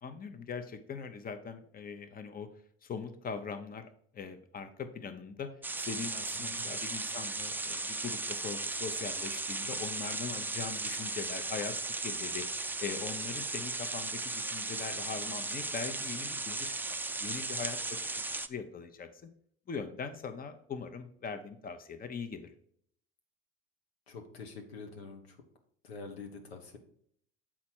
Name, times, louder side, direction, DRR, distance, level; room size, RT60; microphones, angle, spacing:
voice 1, 0.0-2.5 2.8-11.8 12.0-16.8 17.2-17.8 18.0-19.3 19.7-22.5, left 5 dB, 30° left, 9 dB, 0.9 m, -41 dB
sound 1, 5.6-18.5, right 3 dB, 5° right, 0.3 m, -36 dB
voice 2, 6.3-6.7 24.1-25.4 25.8-26.8, left 4 dB, 90° left, 3 dB, 1.1 m, -46 dB
7.3 x 4.2 x 4.5 m, 0.64 s
hypercardioid pair, 65°, 30 cm